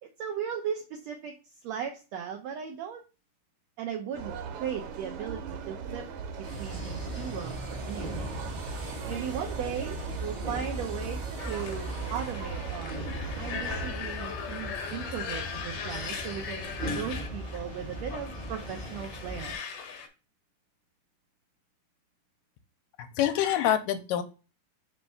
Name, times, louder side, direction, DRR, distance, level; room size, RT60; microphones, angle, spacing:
voice 1, 0.0-3.0 3.8-6.0 6.4-8.4 9.1-11.2 11.5-13.1 13.4-19.6, right 8 dB, 80° right, 4 dB, 1.5 m, -37 dB
sound 1, 4.1-13.9, right 6 dB, 65° right, 2.2 m, -39 dB
sound 2, 6.4-19.5, equal, 45° right, 0.6 m, -38 dB
sound 3, 11.4-20.1, left 6 dB, 65° left, 1.6 m, -39 dB
voice 2, 23.0-24.2, left 11 dB, 90° left, 9 dB, 2.3 m, -26 dB
5.2 x 3.4 x 5.3 m, 0.32 s
omnidirectional pair, 3.8 m